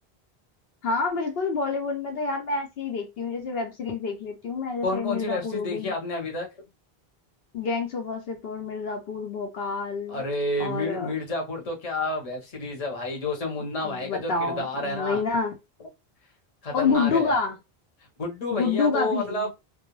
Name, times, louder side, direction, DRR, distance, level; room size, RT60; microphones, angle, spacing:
voice 1, 0.8-6.0 7.5-10.2 10.6-11.1 13.8-15.6 16.7-17.6 18.5-19.5, left 4 dB, 75° left, 0.8 m, -28 dB
voice 2, 4.8-6.5 10.1-15.2 16.6-17.3 18.2-19.6, left 2 dB, 40° left, 0.8 m, -30 dB
2.3 x 2.0 x 2.9 m
omnidirectional pair, 1.0 m